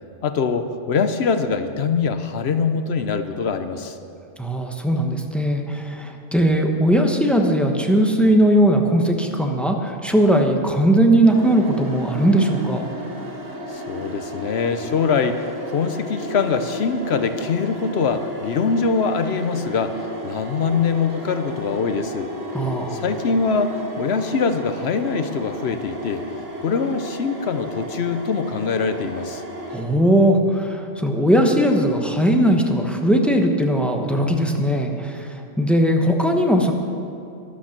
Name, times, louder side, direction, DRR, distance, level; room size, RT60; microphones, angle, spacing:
voice 1, 0.2-4.0 13.7-22.3 22.9-26.2 26.6-29.4, left 5 dB, 60° left, 9 dB, 0.9 m, -23 dB
voice 2, 4.4-12.8 22.5-23.0 29.7-35.3 35.6-36.7, right 1 dB, ahead, 3 dB, 0.9 m, -19 dB
sound 1, 11.3-29.8, equal, 70° right, 2.0 m, -33 dB
13.0 x 11.5 x 5.9 m, 2.7 s
omnidirectional pair, 1.3 m